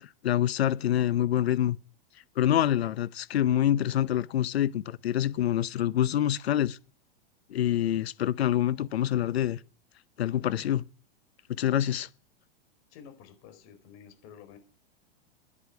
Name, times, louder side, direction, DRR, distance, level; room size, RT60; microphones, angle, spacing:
voice 1, 0.0-1.8 2.4-6.8 7.5-9.6 10.2-10.9 11.5-12.1, left 11 dB, 90° left, 0.7 m, -26 dB
voice 2, 12.9-14.6, left 8 dB, 50° left, 4.7 m, -50 dB
10.0 x 8.6 x 9.2 m
hypercardioid pair, 115°, 30 cm